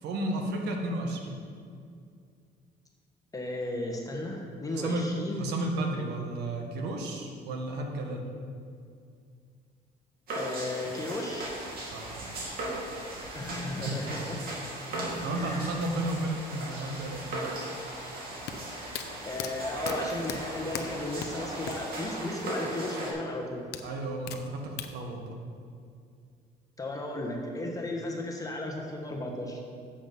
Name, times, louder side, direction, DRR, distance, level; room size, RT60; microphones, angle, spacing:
voice 1, 0.0-1.4 4.7-5.1 5.4-8.3 11.9-12.6 13.8-14.0 14.9-17.2 23.8-25.4, right 2 dB, 80° right, 2 dB, 1.4 m, -33 dB
voice 2, 3.3-5.5 10.3-11.5 13.3-14.4 15.4-15.8 19.2-23.6 26.8-29.6, left 1 dB, 20° left, 0 dB, 1.3 m, -35 dB
sound 1, 10.3-23.1, right 1 dB, 65° right, 2.4 m, -37 dB
sound 2, 18.5-21.9 22.2-22.3 23.7-24.9, left 9 dB, 75° left, 0.7 m, -38 dB
8.1 x 7.2 x 5.4 m, 2.3 s
cardioid pair, 110°, 17 cm